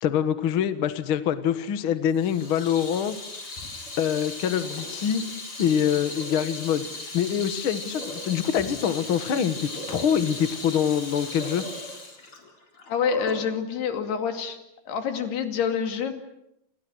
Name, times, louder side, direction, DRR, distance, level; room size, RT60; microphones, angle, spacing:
voice 1, 0.0-3.2 4.0-5.2 5.6-6.8 7.1-11.6, left 8 dB, 60° left, 10 dB, 1.4 m, -25 dB
Water tap faucet / Sink (filling or washing), 2.1-13.5, left 2 dB, 35° left, 4.8 m, -37 dB
voice 2, 12.9-14.6 14.9-16.1, left 7 dB, 85° left, 6 dB, 4.4 m, -27 dB
30.0 x 28.0 x 6.3 m, 0.84 s
omnidirectional pair, 4.5 m